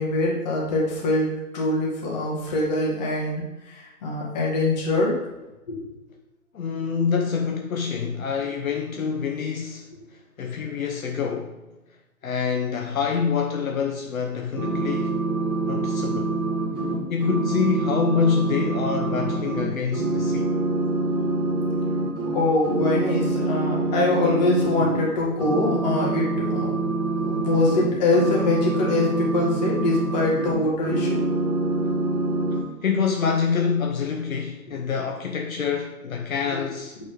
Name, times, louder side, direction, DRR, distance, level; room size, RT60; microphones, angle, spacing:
voice 1, 0.0-5.2 5.7-5.8 21.1-21.2 22.3-26.8 27.2-31.2, left 2 dB, 30° left, 1.8 m, -23 dB
voice 2, 6.5-9.9 10.4-11.6 12.2-15.1 15.7-16.4 17.1-20.5 32.8-37.0, left 6 dB, 65° left, 0.8 m, -26 dB
sound 1, 14.5-19.6 19.9-22.4 22.6-25.0 25.4-30.6 30.8-32.6, right 2 dB, 15° right, 1.5 m, -25 dB
8.4 x 4.1 x 3.7 m
hypercardioid pair, 150°, 45 cm